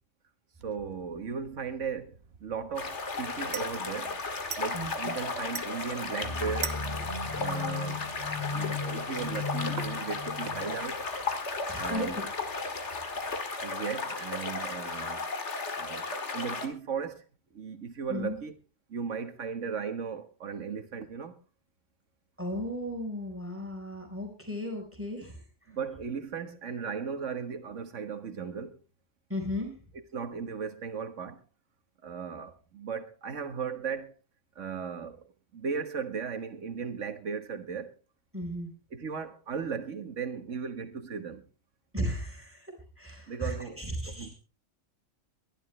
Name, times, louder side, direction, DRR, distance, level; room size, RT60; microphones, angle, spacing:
sound 1, 0.6-13.4, right 6 dB, 55° right, 1.2 m, -46 dB
voice 1, 0.6-2.2 2.4-4.2 4.6-6.8 7.4-8.0 8.5-11.0 11.8-12.3 13.6-15.3 15.8-16.1 16.3-17.2 17.5-18.5 18.9-21.4 25.7-28.8 29.9-31.4 32.0-34.1 34.6-35.2 35.5-37.9 38.9-41.4 43.3-44.3, right 6 dB, 80° right, 1.7 m, -36 dB
sound 2, 2.8-16.7, left 3 dB, 70° left, 2.1 m, -35 dB
sound 3, 6.2-10.8, left 4 dB, 25° left, 2.6 m, -36 dB
voice 2, 11.7-12.1 18.1-18.4 22.4-25.4 29.3-29.7 38.3-38.7 41.9-42.7 43.0-44.3, equal, 10° right, 4.3 m, -35 dB
22.5 x 11.5 x 3.2 m
omnidirectional pair, 1.3 m